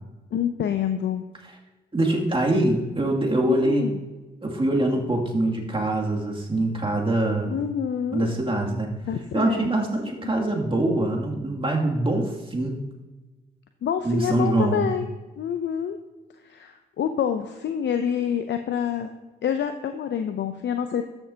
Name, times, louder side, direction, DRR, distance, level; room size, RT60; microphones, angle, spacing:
voice 1, 0.3-1.2 3.5-4.0 7.4-8.3 9.1-9.7 10.2-10.3 13.8-15.1 15.4-16.0 16.4-19.1 19.4-21.0, left 8 dB, 65° left, 8 dB, 0.6 m, -27 dB
voice 2, 1.9-3.9 4.4-7.6 8.1-8.9 9.3-12.8 14.0-14.9, right 1 dB, 25° right, -1 dB, 2.5 m, -24 dB
13.5 x 6.8 x 2.8 m, 1.2 s
hypercardioid pair, 40°, 20 cm